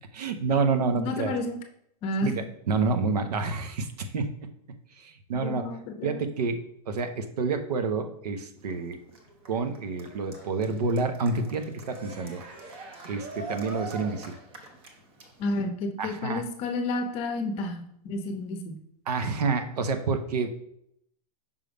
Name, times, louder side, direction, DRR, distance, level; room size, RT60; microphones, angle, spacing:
voice 1, 0.1-1.3 2.2-5.7 6.0-9.0 9.5-12.4 13.0-14.3 16.0-16.4 19.1-20.5, right 4 dB, 80° right, 8 dB, 0.9 m, -29 dB
voice 2, 1.0-1.6 2.0-2.4 5.3-6.2 15.4-18.8, left 2 dB, 30° left, 5 dB, 0.8 m, -31 dB
Cheering, 8.6-15.6, right 2 dB, 25° right, 0.9 m, -43 dB
5.4 x 3.4 x 5.1 m, 0.74 s
hypercardioid pair, 145°, 20 cm